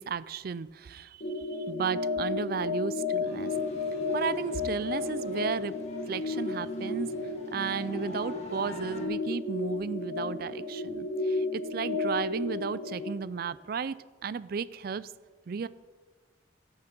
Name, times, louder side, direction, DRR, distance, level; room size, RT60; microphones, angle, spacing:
voice 1, 0.0-3.6 4.1-5.7 6.1-7.1 7.5-14.0 14.2-15.1 15.5-15.7, right 6 dB, 55° right, 17 dB, 0.4 m, -34 dB
sound 1, 1.2-13.1, left 3 dB, 55° left, 1.3 m, -33 dB
sound 2, 3.2-9.1, left 1 dB, 35° left, 1.7 m, -48 dB
13.5 x 6.4 x 6.0 m, 1.4 s
head